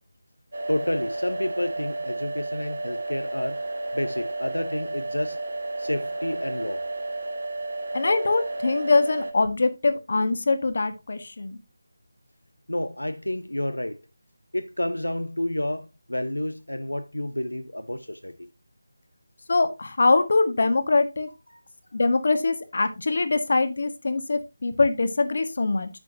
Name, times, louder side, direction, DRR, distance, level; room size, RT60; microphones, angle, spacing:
sound 1, 0.5-9.3, right 2 dB, 55° right, 2.4 m, -32 dB
voice 1, 0.7-3.6 3.9-5.4 5.8-6.8 12.7-14.0 14.5-18.5 21.5-21.6, left 1 dB, 90° left, 0.9 m, -30 dB
voice 2, 7.9-11.6 19.5-21.3 21.9-25.9, left 3 dB, 55° left, 1.6 m, -23 dB
10.5 x 8.5 x 2.8 m
figure-of-eight pair, 160°, 0 cm